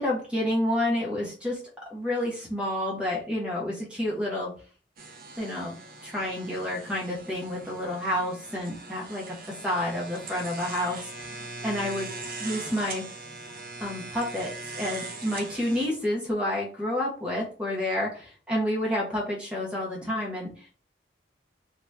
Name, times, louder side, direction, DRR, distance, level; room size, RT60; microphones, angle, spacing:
voice 1, 0.0-1.6 1.9-4.5 5.4-5.7 6.0-9.3 9.6-11.4 11.6-12.1 12.4-13.0 13.8-20.7, left 1 dB, 5° right, -3 dB, 1.0 m, -29 dB
sound 1, 5.0-15.9, right 3 dB, 50° right, 0.6 m, -41 dB
2.9 x 2.5 x 3.3 m, 0.38 s
head